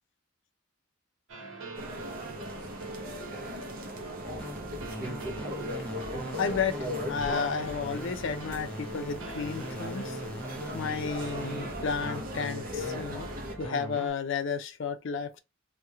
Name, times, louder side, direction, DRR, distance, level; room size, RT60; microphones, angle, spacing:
sound 1, 1.3-14.1, right 3 dB, 85° right, 0.8 m, -44 dB
sound 2, 1.7-13.5, left 1 dB, 45° right, 0.6 m, -38 dB
sound 3, 4.2-14.1, equal, 5° left, 0.5 m, -41 dB
voice 1, 6.1-6.8 7.1-10.2 10.7-13.3 13.6-15.4, left 5 dB, 65° left, 0.4 m, -32 dB
2.8 x 2.1 x 3.5 m
head